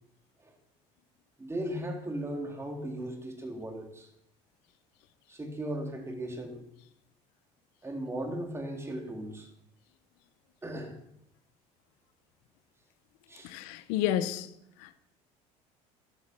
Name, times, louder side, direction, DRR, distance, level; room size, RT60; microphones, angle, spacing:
voice 1, 1.4-4.1 5.3-6.6 7.8-9.5 10.6-11.0 13.3-13.5, right 1 dB, 15° right, 3.9 m, -37 dB
voice 2, 13.4-14.5 14.8-15.0, left 11 dB, 80° left, 1.1 m, -31 dB
13.5 x 11.0 x 6.3 m
supercardioid pair, 90°, 15 cm